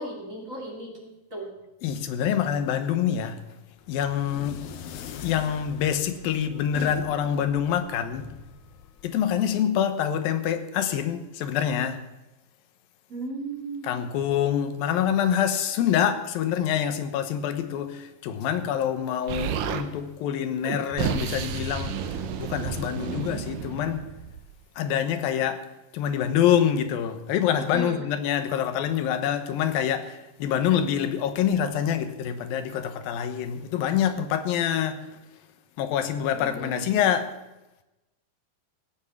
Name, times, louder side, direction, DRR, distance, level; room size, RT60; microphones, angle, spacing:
voice 1, 0.0-1.5 13.1-13.9 27.7-28.0 36.3-37.1, right 2 dB, 25° right, 2.8 m, -36 dB
voice 2, 1.8-3.4 3.9-4.7 5.2-8.3 9.0-12.0 13.8-22.0 22.4-24.1 24.8-35.1 35.8-37.3, left 9 dB, 90° left, 2.9 m, -26 dB
sound 1, 3.8-9.6, left 9 dB, 70° left, 2.1 m, -42 dB
Explosion, 19.3-19.9 20.6-24.5, right 7 dB, 75° right, 2.6 m, -31 dB
16.0 x 9.7 x 7.1 m
omnidirectional pair, 4.0 m